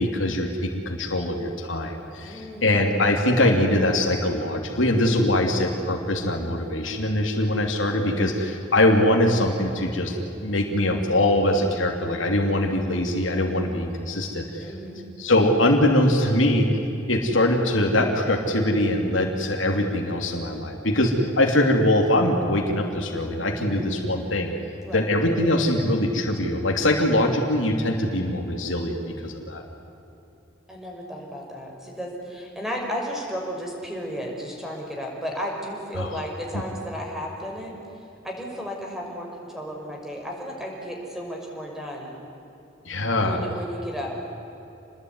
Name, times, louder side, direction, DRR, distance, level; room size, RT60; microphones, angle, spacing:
voice 1, 0.0-14.7 15.2-16.7 17.1-24.5 24.9-29.6 36.0-36.1 42.8-43.4, left 1 dB, 80° left, 2 dB, 3.0 m, -22 dB
voice 2, 2.2-2.8 12.6-12.7 14.6-15.0 23.6-23.9 24.8-25.1 30.7-37.7 38.2-42.2 43.2-44.1, equal, ahead, -1 dB, 5.9 m, -34 dB
28.0 x 20.5 x 9.7 m, 3.0 s
head